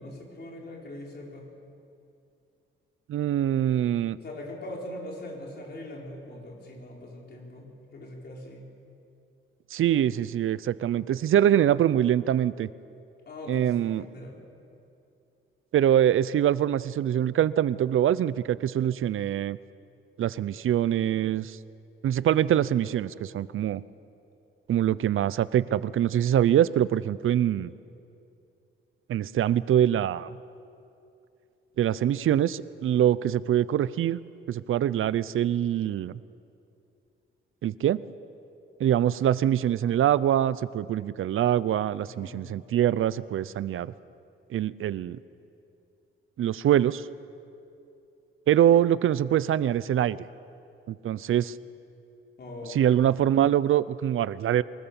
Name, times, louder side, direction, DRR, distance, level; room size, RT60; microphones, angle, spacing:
voice 1, 0.0-1.5 4.2-8.7 13.3-14.4 42.1-42.6 52.4-52.8, left 1 dB, 50° left, -1 dB, 4.6 m, -41 dB
voice 2, 3.1-4.2 9.7-12.7 13.5-14.1 15.7-19.6 20.2-21.6 22.0-23.8 24.7-27.7 29.1-30.3 31.8-34.2 34.5-36.1 37.6-38.0 38.8-43.9 44.5-45.2 46.4-47.1 48.5-50.2 50.9-51.6 52.7-54.6, right 11 dB, 75° right, 18 dB, 0.5 m, -24 dB
23.5 x 19.5 x 7.1 m, 2.7 s
wide cardioid pair, 140°, 21 cm